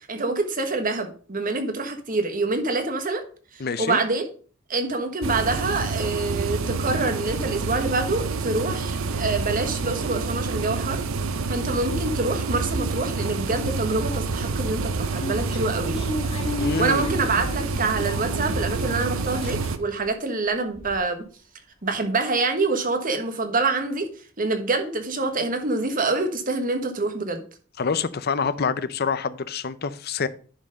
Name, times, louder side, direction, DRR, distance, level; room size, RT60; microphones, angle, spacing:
voice 1, 0.1-3.2 3.5-4.3 4.7-11.0 11.5-16.0 16.8-21.2 21.8-24.1 24.4-27.4, right 3 dB, 40° right, 1.3 m, -26 dB
voice 2, 3.6-4.0 16.6-17.1 27.8-30.3, left 5 dB, 50° left, 0.6 m, -26 dB
sound 1, 5.2-19.8, right 4 dB, 85° right, 0.7 m, -28 dB
sound 2, 14.5-18.9 19.2-20.1 20.5-20.6 20.7-21.0, left 1 dB, 30° left, 1.8 m, -34 dB
10.5 x 4.5 x 5.2 m
head